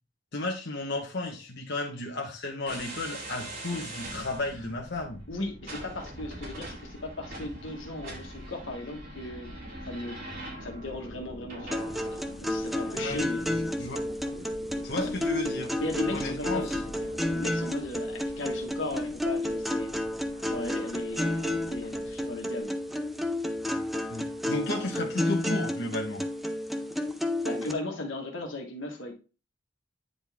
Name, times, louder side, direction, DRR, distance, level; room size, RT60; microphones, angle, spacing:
voice 1, 0.3-5.2 13.0-13.2 13.5-14.0 14.8-15.8 16.1-16.8 24.1-26.2, left 2 dB, 60° left, 0 dB, 1.1 m, -33 dB
sound 1, 2.7-22.4, right 1 dB, 50° right, 3.4 m, -43 dB
voice 2, 5.3-9.5 9.8-10.2 10.6-11.8 12.4-13.4 15.0-15.1 15.8-16.8 17.3-19.9 20.5-22.8 27.4-29.1, left 2 dB, 85° left, 2 dB, 1.6 m, -37 dB
sound 2, 11.7-27.7, left 1 dB, ahead, 0.6 m, -31 dB
9.6 x 4.0 x 3.6 m, 0.34 s
head